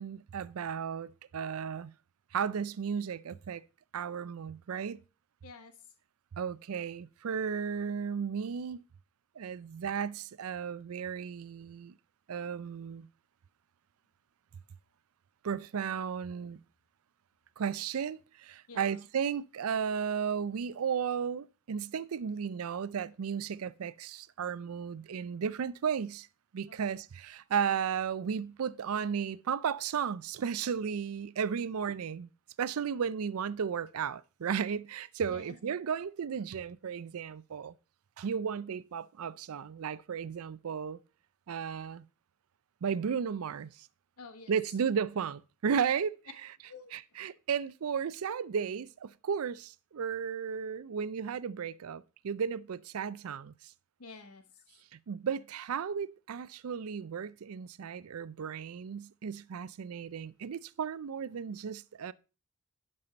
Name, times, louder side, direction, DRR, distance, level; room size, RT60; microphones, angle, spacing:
voice 1, 0.0-1.9 2.3-3.7 3.9-5.0 6.3-8.8 9.4-11.9 12.3-13.1 15.4-16.6 17.6-26.3 26.5-32.3 32.6-37.7 38.2-41.0 41.5-42.1 42.8-43.9 44.5-46.2 46.9-53.7 54.9-62.1, right 7 dB, 75° right, 0.4 m, -34 dB
voice 2, 5.4-5.8 18.7-19.1 26.7-26.8 35.3-35.6 44.2-44.5 46.7-46.9 47.3-47.4 54.0-54.6, left 4 dB, 90° left, 1.2 m, -50 dB
11.0 x 5.5 x 4.3 m
head